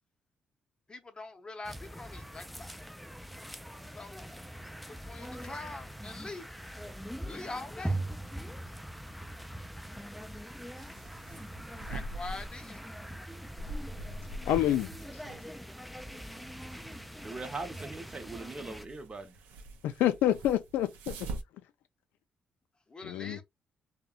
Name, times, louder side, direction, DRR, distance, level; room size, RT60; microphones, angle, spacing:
voice 1, 0.9-2.9 3.9-4.3 4.9-6.5 7.2-8.0 11.9-12.8 22.9-23.4, left 3 dB, 30° left, 0.7 m, -43 dB
sound 1, 1.6-18.9, right 1 dB, ahead, 0.3 m, -42 dB
sound 2, 10.8-21.4, right 1 dB, 90° right, 0.4 m, -44 dB
voice 2, 14.4-14.9 19.8-21.3 23.0-23.4, left 12 dB, 85° left, 0.4 m, -28 dB
voice 3, 17.2-19.4, right 3 dB, 30° right, 0.7 m, -40 dB
2.7 x 2.1 x 2.3 m
supercardioid pair, 65°, 3 cm